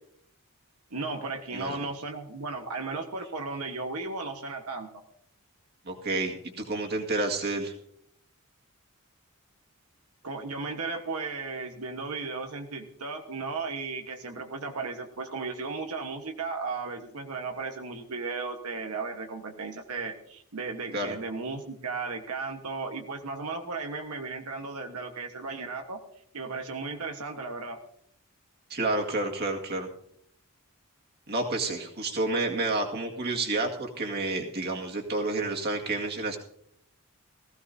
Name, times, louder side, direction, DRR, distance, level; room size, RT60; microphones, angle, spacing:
voice 1, 0.9-5.0 10.2-26.0 26.3-27.8, right 4 dB, 90° right, 4 dB, 1.3 m, -35 dB
voice 2, 1.5-1.8 5.9-7.7 20.9-21.1 28.7-29.9 31.3-36.4, right 2 dB, 45° right, 1 dB, 2.0 m, -30 dB
19.0 x 15.5 x 2.7 m, 0.68 s
head